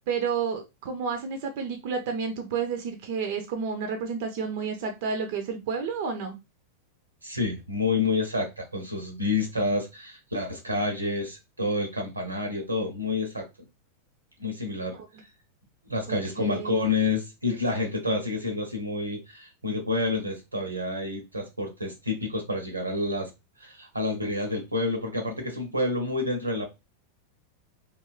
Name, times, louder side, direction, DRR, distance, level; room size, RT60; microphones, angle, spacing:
voice 1, 0.1-6.4 14.9-15.1 16.1-16.8, right 6 dB, 50° right, 0.5 m, -31 dB
voice 2, 7.2-13.5 14.4-15.0 15.9-23.3 23.6-26.7, left 2 dB, 85° right, 0.7 m, -29 dB
2.9 x 2.3 x 2.3 m
figure-of-eight pair, 90°, 0 cm